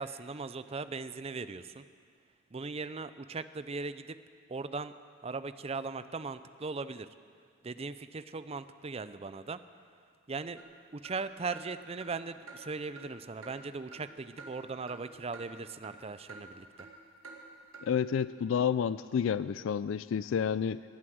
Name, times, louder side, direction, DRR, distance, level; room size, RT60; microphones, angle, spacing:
voice 1, 0.0-1.8 2.5-4.2 4.5-4.9 5.2-7.1 7.6-9.6 10.3-10.6 10.9-16.9, right 4 dB, 30° right, 13 dB, 0.5 m, -39 dB
sound 1, 10.6-10.7 11.0-11.2 11.5-11.7 12.0-12.1 12.5-12.6 13.0-13.1 13.4-13.6 13.9-14.1 14.4-14.5 14.9-15.0 15.3-15.4 15.8-16.0 16.3-16.4 16.8-16.9 17.2-17.4 17.7-17.9, right 3 dB, 75° right, 2.1 m, -48 dB
voice 2, 17.8-20.8, left 7 dB, 65° left, 16 dB, 0.3 m, -30 dB
19.0 x 9.7 x 7.8 m, 2.2 s
head